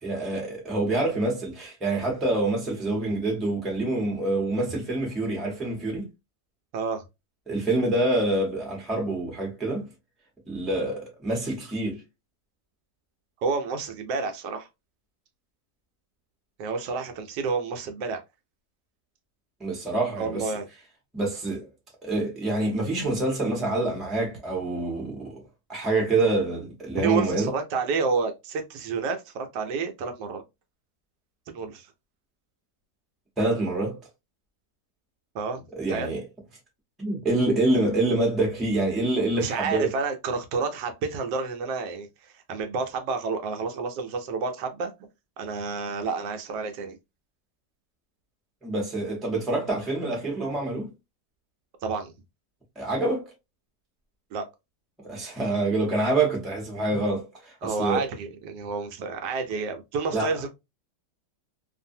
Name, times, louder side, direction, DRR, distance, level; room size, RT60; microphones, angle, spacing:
voice 1, 0.0-6.1 7.5-9.9 10.5-12.0 19.6-20.5 21.1-21.7 22.0-25.4 25.7-27.5 33.4-34.0 35.8-36.2 37.0-39.9 48.6-50.9 52.8-53.3 55.0-58.0 60.1-60.3, right 2 dB, ahead, 0.7 m, -26 dB
voice 2, 6.7-7.0 13.4-14.7 16.6-18.2 20.2-20.7 27.0-30.4 31.5-31.9 35.3-35.6 35.9-36.1 39.4-44.9 45.4-47.0 51.8-52.1 54.3-54.4 57.6-60.5, right 4 dB, 75° right, 1.2 m, -29 dB
2.5 x 2.5 x 2.6 m
omnidirectional pair, 1.9 m